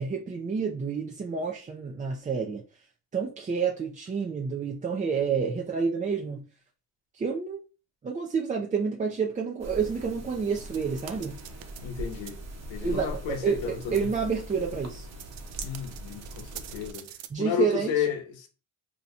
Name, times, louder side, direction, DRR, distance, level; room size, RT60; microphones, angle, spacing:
voice 1, 0.0-2.6 3.1-6.5 7.2-7.6 8.0-11.4 12.8-15.1 17.3-17.9, right 5 dB, 20° right, 0.3 m, -29 dB
sound 1, 9.6-16.9, right 1 dB, 35° right, 0.8 m, -41 dB
sound 2, 10.6-11.8 12.1-12.3 12.9-13.0 13.3-13.4 13.6-13.9 14.3-17.3, right 12 dB, 80° right, 0.5 m, -45 dB
voice 2, 11.8-12.4 12.7-14.1 15.6-17.1 17.4-18.5, left 8 dB, 75° left, 0.9 m, -32 dB
2.8 x 2.2 x 4.1 m
cardioid pair, 85°, 46 cm